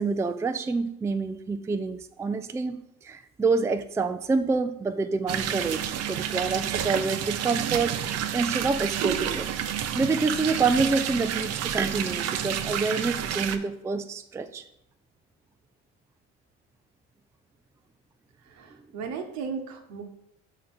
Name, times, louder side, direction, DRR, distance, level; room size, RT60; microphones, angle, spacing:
voice 1, 0.0-9.5 9.9-14.6, right 4 dB, 10° right, 9 dB, 0.3 m, -27 dB
sound 1, 5.3-13.6, right 10 dB, 60° right, 0.6 m, -30 dB
voice 2, 18.4-20.0, right 5 dB, 75° right, 5 dB, 1.1 m, -36 dB
5.0 x 4.1 x 6.0 m, 0.77 s
cardioid pair, 100°, 29 cm